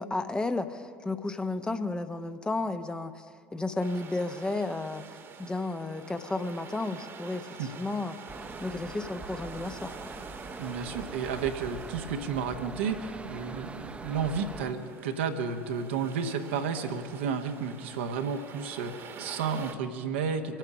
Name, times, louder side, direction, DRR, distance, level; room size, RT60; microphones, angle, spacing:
voice 1, 0.0-3.2 3.5-5.0 5.4-8.1 8.6-10.1, left 2 dB, 15° left, 8 dB, 0.9 m, -33 dB
sound 1, 3.8-19.7, right 5 dB, 40° right, 1.4 m, -47 dB
sound 2, 8.3-14.7, right 3 dB, 20° right, 0.9 m, -42 dB
voice 2, 10.6-20.6, right 6 dB, 70° right, 5 dB, 1.1 m, -32 dB
24.5 x 9.1 x 6.0 m, 2.3 s
figure-of-eight pair, 60°, 6 cm